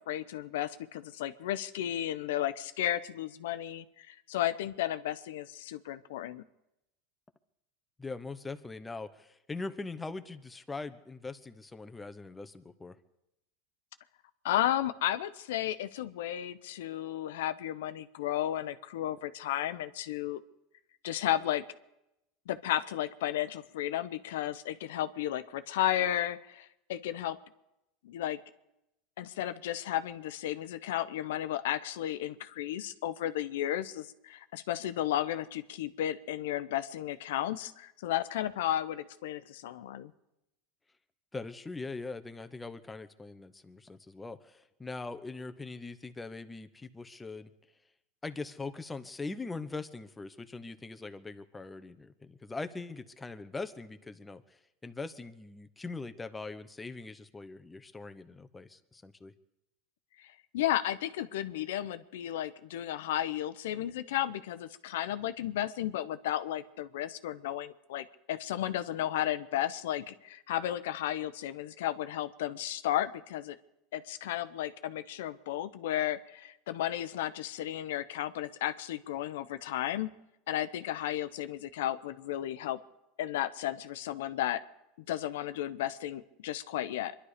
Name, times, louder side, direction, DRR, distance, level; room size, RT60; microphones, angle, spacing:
voice 1, 0.1-6.4 14.4-20.4 21.0-21.6 22.5-27.4 28.0-28.4 29.2-40.1 60.2-73.6 73.9-80.1 80.5-82.8 83.2-84.6 85.1-87.1, left 12 dB, 85° left, 13 dB, 0.8 m, -33 dB
voice 2, 8.0-13.0 41.3-47.5 48.2-59.3, left 3 dB, 10° left, 10 dB, 1.0 m, -42 dB
24.0 x 11.5 x 5.1 m, 0.88 s
supercardioid pair, 115°, 0 cm